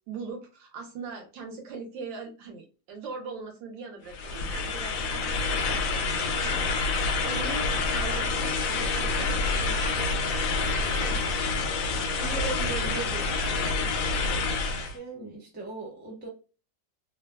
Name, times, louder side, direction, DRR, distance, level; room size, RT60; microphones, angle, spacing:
voice 1, 0.1-10.0 10.5-11.3 11.8-13.9, right 4 dB, 80° right, 3 dB, 1.4 m, -40 dB
sound 1, 4.1-15.0, left 3 dB, 85° left, 0.7 m, -27 dB
voice 2, 14.9-16.3, right 3 dB, 10° right, -2 dB, 0.5 m, -41 dB
3.2 x 2.3 x 2.2 m, 0.33 s
omnidirectional pair, 2.0 m